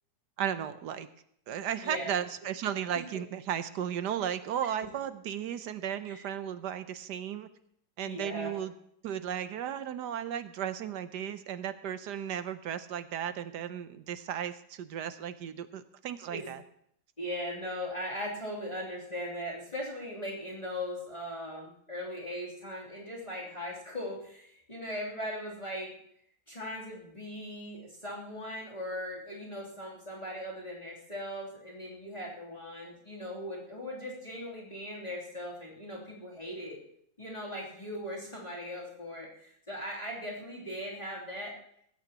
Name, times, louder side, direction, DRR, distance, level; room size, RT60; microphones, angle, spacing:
voice 1, 0.4-1.1 1.5-7.5 8.0-8.7 9.0-16.6, right 9 dB, 70° right, 12 dB, 1.2 m, -35 dB
voice 2, 1.8-2.1 6.0-6.2 8.0-8.5 16.3-16.5 17.2-25.9 26.5-36.8 37.2-41.5, equal, 20° left, -6 dB, 3.2 m, -39 dB
19.5 x 16.0 x 2.9 m, 0.69 s
omnidirectional pair, 2.0 m